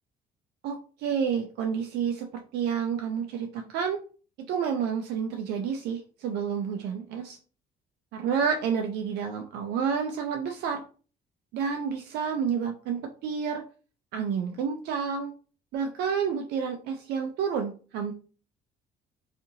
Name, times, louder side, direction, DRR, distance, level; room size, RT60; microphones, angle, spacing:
voice 1, 0.6-4.0 4.5-7.4 8.1-10.8 11.5-13.6 14.1-15.3 15.7-18.1, right 7 dB, 75° right, 4 dB, 0.4 m, -29 dB
2.7 x 2.4 x 2.7 m, 0.38 s
cardioid pair, 110°, 17 cm